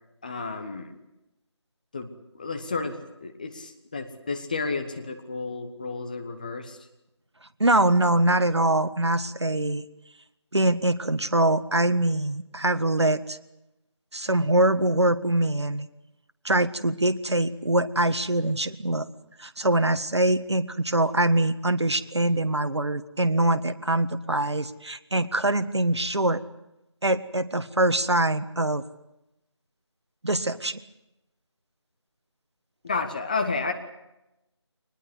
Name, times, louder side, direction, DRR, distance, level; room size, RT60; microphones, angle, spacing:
voice 1, 0.2-1.0 1.9-2.1 2.3-6.8 32.8-33.7, left 4 dB, 15° left, 6 dB, 1.2 m, -31 dB
voice 2, 7.6-9.9 10.5-13.4 14.1-15.9 16.4-19.1 19.4-26.4 27.0-28.8 30.2-30.8, right 1 dB, 65° right, 9 dB, 1.6 m, -23 dB
24.0 x 20.5 x 8.2 m, 0.90 s
figure-of-eight pair, 165°, 15 cm